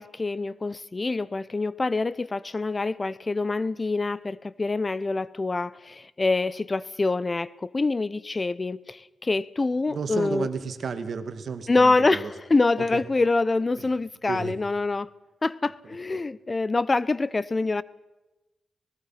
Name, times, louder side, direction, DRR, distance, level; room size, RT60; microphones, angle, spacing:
voice 1, 0.0-10.5 11.7-15.1 15.4-17.8, left 3 dB, 30° left, 0.7 m, -25 dB
voice 2, 9.9-12.3 12.9-13.0 13.8-13.9 14.3-14.5, right 5 dB, 65° right, 2.0 m, -32 dB
26.0 x 19.5 x 5.8 m
cardioid pair, 70°, 0 cm